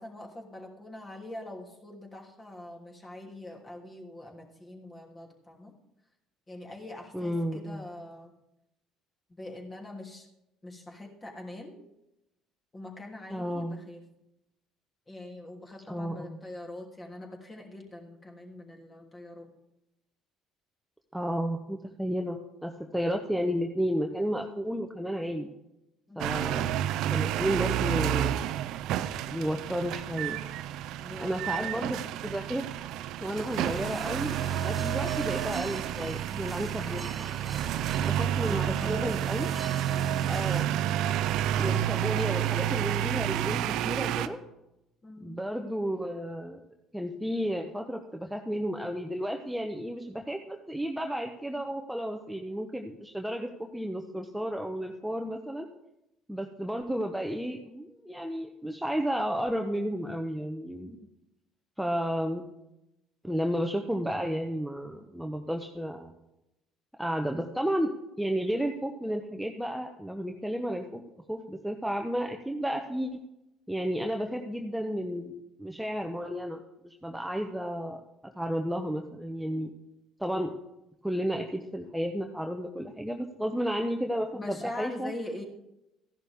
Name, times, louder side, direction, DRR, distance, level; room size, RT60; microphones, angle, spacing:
voice 1, 0.0-5.7 6.5-8.3 9.3-10.3 10.6-11.8 12.7-14.0 15.1-19.5 26.1-26.4 31.0-32.0 38.4-39.1 39.9-40.3 45.0-45.4 84.3-85.4, left 1 dB, 25° left, 0 dB, 3.0 m, -43 dB
voice 2, 7.1-7.8 13.3-13.8 15.9-16.4 21.1-25.5 26.2-26.8 27.1-28.4 29.3-30.4 31.2-32.0 32.2-32.6 33.2-37.0 38.0-39.5 40.2-40.7 41.5-44.4 45.2-46.6 46.9-55.7 56.3-61.0 61.8-62.4 63.2-66.1 67.0-67.9 68.2-71.0 71.3-73.2 73.7-78.0 78.4-79.7 80.2-80.5 81.0-85.1, equal, 5° right, 3 dB, 1.0 m, -32 dB
sound 1, 26.2-44.3, right 11 dB, 65° right, 0.5 m, -30 dB
sound 2, 33.3-40.6, right 3 dB, 25° right, 0.8 m, -43 dB
14.0 x 11.0 x 3.6 m, 0.89 s
hypercardioid pair, 60°, 0 cm